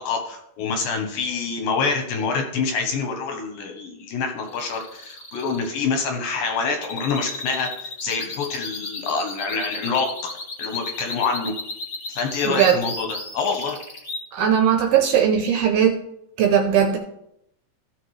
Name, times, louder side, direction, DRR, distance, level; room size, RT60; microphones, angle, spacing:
voice 1, 0.0-10.1 10.6-11.5 12.1-13.8, left 5 dB, 70° left, 3 dB, 2.3 m, -26 dB
sound 1, 4.4-14.2, left 3 dB, 30° left, 1.9 m, -34 dB
voice 2, 12.4-12.8 14.3-16.0 16.4-17.0, right 8 dB, 80° right, 4 dB, 2.4 m, -18 dB
15.5 x 6.6 x 3.2 m, 0.77 s
omnidirectional pair, 5.0 m